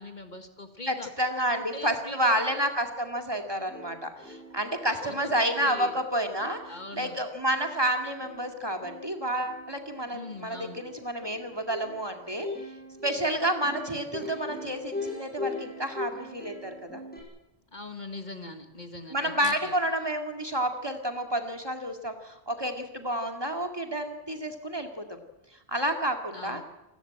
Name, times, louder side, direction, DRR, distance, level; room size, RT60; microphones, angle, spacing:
voice 1, 0.0-1.1 1.5-2.6 4.9-5.9 6.7-7.2 10.1-10.8 17.7-19.7 26.3-26.6, left 2 dB, 45° left, 7 dB, 1.8 m, -41 dB
voice 2, 0.9-6.6 6.9-12.5 13.0-17.0 19.1-25.0 25.7-26.6, right 1 dB, 20° right, 4 dB, 2.3 m, -30 dB
Plucked string instrument, 3.3-3.4 3.7-17.2, left 2 dB, 10° left, 5.9 m, -41 dB
27.5 x 14.0 x 8.8 m, 0.98 s
omnidirectional pair, 1.1 m